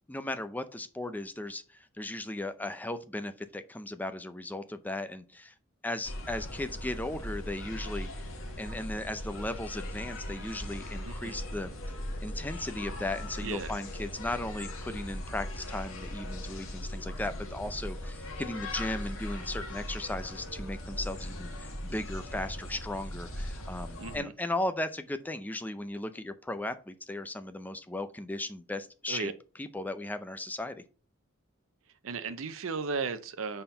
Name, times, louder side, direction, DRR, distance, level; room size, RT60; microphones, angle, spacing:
voice 1, 0.1-5.5 5.8-8.3 8.6-11.7 12.2-29.3 29.6-30.8, left 1 dB, 10° left, 0.5 m, -36 dB
sound 1, 6.0-24.2, left 1 dB, 75° left, 1.7 m, -39 dB
voice 2, 11.0-11.4 13.4-13.7 24.0-24.3 29.1-29.3 32.0-33.6, right 5 dB, 75° right, 0.6 m, -35 dB
5.5 x 4.4 x 5.5 m
head